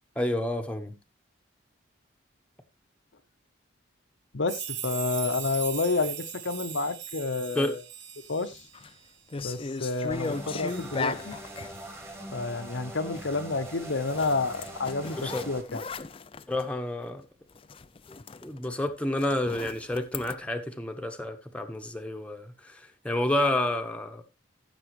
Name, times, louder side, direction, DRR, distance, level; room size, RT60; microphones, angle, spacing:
voice 1, 0.2-1.0 7.5-7.8 15.2-15.4 16.5-17.2 18.1-22.8 23.0-24.2, left 1 dB, 5° left, 1.1 m, -30 dB
voice 2, 4.3-7.8 8.3-8.6 9.4-11.4 12.3-15.8, left 3 dB, 70° left, 0.9 m, -30 dB
sound 1, 4.5-11.4 11.7-11.9 13.2-13.3, right 8 dB, 75° right, 1.8 m, -40 dB
sound 2, 8.5-8.9 9.3-11.8 14.1-16.7 17.1-17.2 17.5-20.3, left 4 dB, 30° left, 0.4 m, -37 dB
sound 3, 10.1-15.6, right 1 dB, 15° right, 2.0 m, -42 dB
14.5 x 7.0 x 3.1 m
head